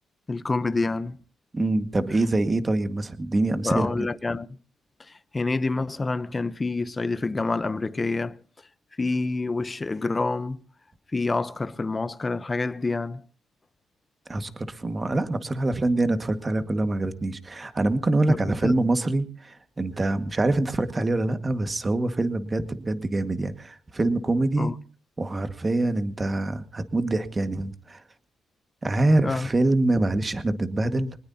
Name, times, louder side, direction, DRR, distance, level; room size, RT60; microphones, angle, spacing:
voice 1, 0.3-1.2 3.6-4.5 5.1-8.4 9.0-10.6 11.1-13.2 18.3-18.4 18.6-18.9 24.6-24.7 29.2-29.5, left 3 dB, 25° left, 0.8 m, -27 dB
voice 2, 1.5-3.9 14.3-24.7 25.2-28.0 28.8-31.2, right 2 dB, 25° right, 1.8 m, -25 dB
23.5 x 20.0 x 2.9 m
cardioid pair, 90°, 0 cm